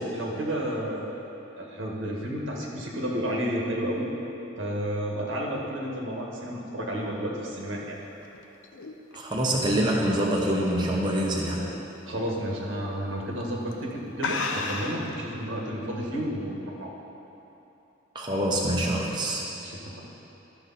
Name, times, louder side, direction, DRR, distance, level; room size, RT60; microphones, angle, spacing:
voice 1, 0.0-4.1 4.6-8.0 12.1-16.9 19.4-20.1, equal, 85° right, -2 dB, 1.7 m, -31 dB
Drinking water, 8.0-11.2 11.6-11.9 12.3-12.4 13.2-13.4 13.7-13.8 14.2-15.1, left 3 dB, 80° left, 0.8 m, -33 dB
voice 2, 9.1-11.7 18.1-19.4, right 1 dB, 25° right, -3 dB, 0.9 m, -25 dB
12.5 x 6.8 x 4.2 m, 2.9 s
head